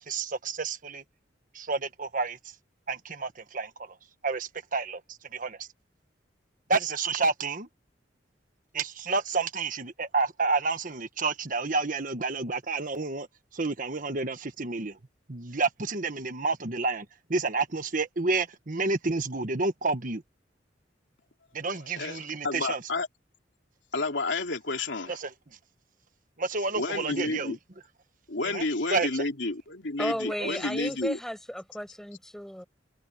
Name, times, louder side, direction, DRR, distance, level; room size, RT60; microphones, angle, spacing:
voice 1, 0.1-1.0 1.5-2.4 2.9-3.7 4.2-5.0 5.3-5.7 6.7-7.7 8.7-13.3 13.5-14.9 15.3-17.0 17.3-20.2 21.5-22.8 25.1-25.3 26.4-27.6 28.4-28.6 28.9-29.2, right 3 dB, 50° right, 1.3 m, -29 dB
voice 2, 21.9-23.1 23.9-25.2 26.7-27.6 28.3-31.2, left 3 dB, 80° left, 3.0 m, -31 dB
voice 3, 30.0-32.6, equal, 5° left, 6.0 m, -34 dB
head